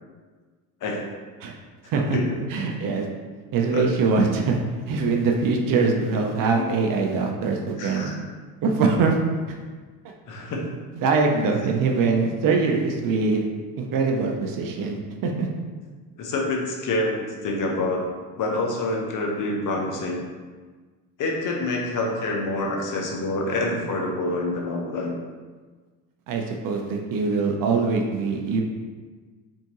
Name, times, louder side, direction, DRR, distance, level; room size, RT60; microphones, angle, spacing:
voice 1, 1.8-2.4 3.7-3.9 7.8-8.2 10.3-10.8 16.2-18.0 18.4-20.2 21.2-25.1, left 2 dB, 40° left, 0 dB, 1.0 m, -27 dB
voice 2, 2.5-3.1 3.5-4.6 4.9-8.1 8.6-9.2 9.5-9.6 11.0-13.5 13.8-15.5 26.3-28.6, right 4 dB, 45° right, 2 dB, 0.7 m, -23 dB
4.2 x 3.7 x 3.0 m, 1.4 s
hypercardioid pair, 80°, 48 cm